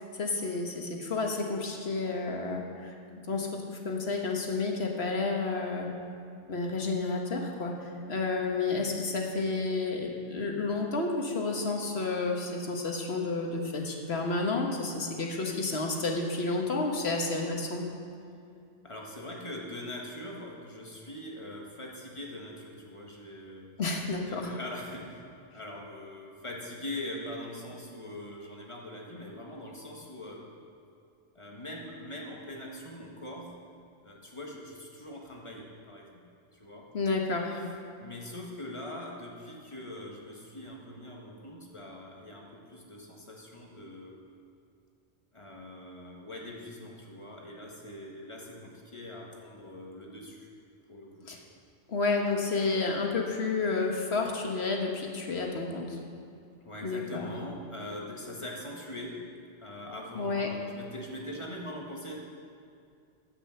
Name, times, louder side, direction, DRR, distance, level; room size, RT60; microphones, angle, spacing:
voice 1, 0.0-2.9 3.3-5.9 6.5-7.7 8.1-17.8 23.8-24.5 36.9-37.6 51.3-51.4 51.9-56.0 56.8-57.3 60.1-60.5, left 3 dB, 60° left, 1 dB, 1.6 m, -30 dB
voice 2, 18.8-23.7 24.3-25.3 25.5-30.4 31.3-33.5 34.0-36.2 36.5-36.9 38.0-44.2 45.3-50.5 50.9-51.3 56.6-59.3 59.6-62.2, left 1 dB, 25° left, -2 dB, 1.7 m, -42 dB
9.9 x 8.4 x 7.8 m, 2.4 s
omnidirectional pair, 1.2 m